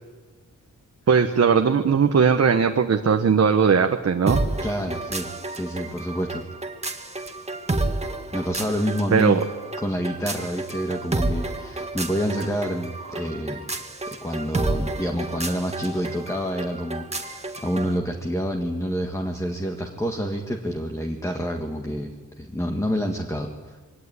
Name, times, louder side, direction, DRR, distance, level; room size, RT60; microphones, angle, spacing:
voice 1, 1.1-4.4 9.1-9.4, right 6 dB, 50° right, 5 dB, 1.2 m, -19 dB
sound 1, 4.3-18.0, right 2 dB, 20° right, 2.1 m, -30 dB
voice 2, 4.6-6.4 8.3-9.4 9.8-13.7 14.1-23.8, equal, 10° left, 3 dB, 1.7 m, -28 dB
23.0 x 18.0 x 9.7 m, 1.3 s
wide cardioid pair, 135°, 31 cm